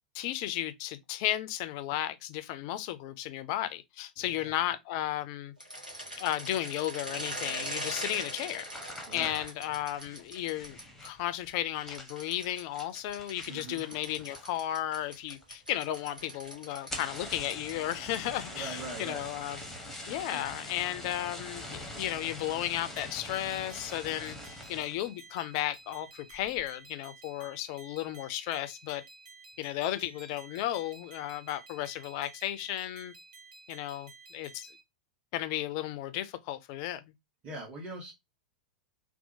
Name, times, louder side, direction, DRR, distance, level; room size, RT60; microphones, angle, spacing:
voice 1, 0.1-5.5 6.2-8.7 9.1-19.6 20.1-29.0 29.6-33.1 33.7-34.7 35.3-37.0, left 13 dB, 40° left, 0.3 m, -34 dB
voice 2, 4.2-4.6 9.1-9.4 13.5-13.8 18.5-19.3 20.3-20.5 37.4-38.1, right 2 dB, 30° right, 1.1 m, -42 dB
sound 1, 5.6-11.1 11.9-18.4, right 1 dB, 90° right, 0.9 m, -42 dB
sound 2, 8.6-14.7 15.0-15.5 15.8-15.9 16.2-16.3 16.7-25.1 25.5-25.9 26.3-26.7, left 1 dB, 5° left, 0.6 m, -44 dB
sound 3, 23.0-34.8, right 3 dB, 65° right, 0.7 m, -53 dB
2.7 x 2.0 x 2.6 m
figure-of-eight pair, 95°, 4 cm